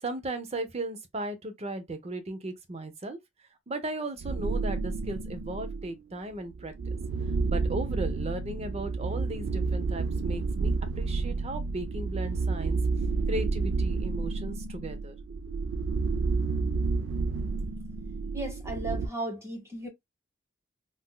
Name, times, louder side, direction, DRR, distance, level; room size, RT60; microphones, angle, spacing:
voice 1, 0.0-3.2 3.7-6.7 7.5-10.7 11.0-12.8 13.3-15.1, right 2 dB, 35° right, 0.7 m, -36 dB
sound 1, 4.2-5.9 6.5-19.1, right 4 dB, 70° right, 0.4 m, -30 dB
voice 2, 18.3-19.9, right 1 dB, 15° right, 1.1 m, -35 dB
3.7 x 2.7 x 2.2 m
head